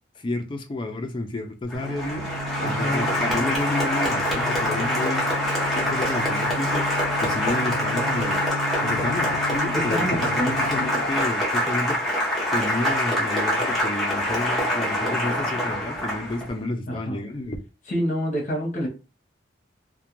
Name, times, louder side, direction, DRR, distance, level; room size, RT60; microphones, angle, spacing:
voice 1, 0.2-2.3 2.6-5.3 5.7-6.9 7.2-8.4 8.8-12.0 12.5-17.6, left 2 dB, 25° left, 0.3 m, -30 dB
Applause, 1.7-16.5, left 1 dB, ahead, 0.7 m, -25 dB
sound 1, 1.7-11.1, left 1 dB, 75° right, 0.6 m, -34 dB
voice 2, 2.6-3.1 9.7-10.6 16.9-17.2 17.9-18.9, equal, 40° left, 0.8 m, -27 dB
2.4 x 2.1 x 2.9 m
head